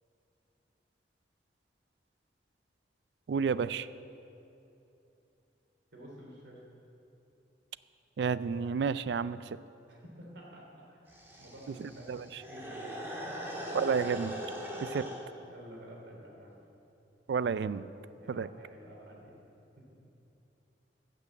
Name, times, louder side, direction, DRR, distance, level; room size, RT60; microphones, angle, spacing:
voice 1, 3.3-3.9 8.2-9.4 11.8-12.3 13.7-14.4 14.8-15.0 17.3-17.8 18.3-18.5, right 6 dB, 65° right, 16 dB, 0.3 m, -31 dB
voice 2, 5.9-6.6 9.9-12.9 13.2-13.6 15.0-15.2 15.5-16.6 18.1-19.4 19.8-19.9, equal, 85° right, -2 dB, 3.1 m, -51 dB
sound 1, 11.1-15.2, equal, 15° right, 1.7 m, -40 dB
14.5 x 6.1 x 7.8 m, 2.8 s
head